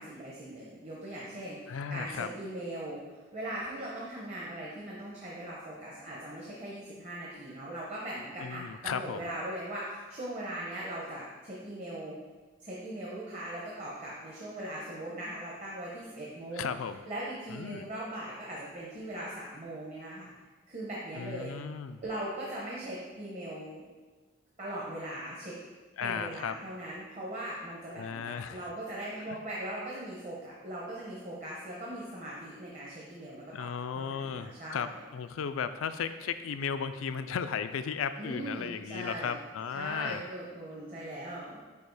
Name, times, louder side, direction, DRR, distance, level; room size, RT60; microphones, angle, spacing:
voice 1, 0.0-12.2 12.6-16.6 17.1-20.3 20.7-21.5 22.0-23.8 24.6-25.5 26.0-33.7 33.9-35.0 38.2-39.4 39.7-41.6, right 1 dB, 35° right, -5 dB, 0.9 m, -40 dB
voice 2, 1.7-2.3 8.4-9.3 16.6-17.0 17.5-17.9 21.1-22.0 26.0-26.5 27.9-28.7 29.3-29.4 33.5-40.2, left 7 dB, 85° left, 11 dB, 0.4 m, -35 dB
8.3 x 2.9 x 4.7 m, 1.3 s
head